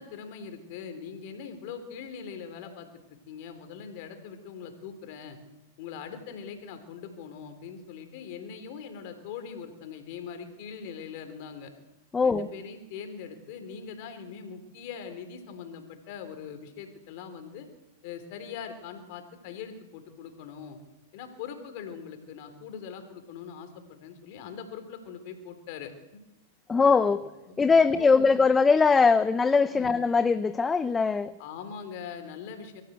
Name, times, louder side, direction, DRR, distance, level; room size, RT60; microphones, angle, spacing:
voice 1, 0.0-2.9 3.3-5.4 5.8-11.7 12.2-17.7 18.0-20.8 21.1-26.2 27.1-27.2 27.5-28.4 29.7-29.9 31.4-32.8, left 7 dB, 55° left, 8 dB, 3.6 m, -42 dB
voice 2, 12.1-12.5 26.7-27.3 27.6-31.3, left 4 dB, 15° left, 13 dB, 0.7 m, -21 dB
23.0 x 14.5 x 8.2 m, 1.0 s
hypercardioid pair, 115°, 0 cm